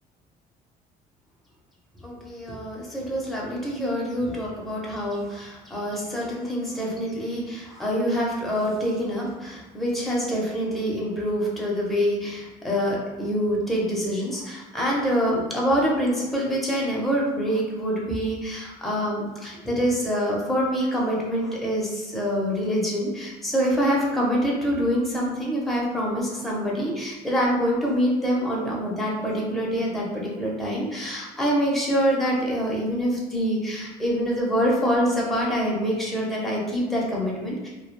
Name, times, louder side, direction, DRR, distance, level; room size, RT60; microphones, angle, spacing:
voice 1, 2.0-37.7, equal, ahead, -5 dB, 0.6 m, -25 dB
2.2 x 2.1 x 2.9 m, 1.2 s
cardioid pair, 110°, 17 cm